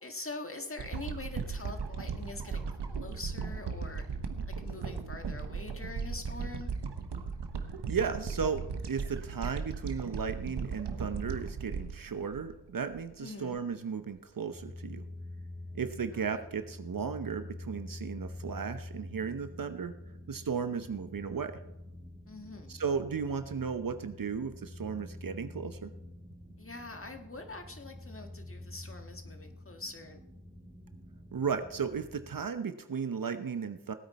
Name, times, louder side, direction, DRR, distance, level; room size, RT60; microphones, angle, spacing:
voice 1, 0.0-4.0 4.5-6.7 13.2-13.6 16.1-16.2 22.3-22.8 26.6-30.2, left 2 dB, 30° left, 5 dB, 1.7 m, -44 dB
sound 1, 0.8-13.1 13.6-13.7, right 5 dB, 80° right, 1.1 m, -37 dB
voice 2, 7.9-15.0 15.7-19.9 20.3-21.6 22.7-25.9 31.3-33.9, right 6 dB, 55° right, 10 dB, 0.9 m, -35 dB
sound 2, 14.5-32.5, left 1 dB, 10° left, 2.5 m, -47 dB
18.5 x 8.7 x 4.2 m, 0.93 s
cardioid pair, 50°, 41 cm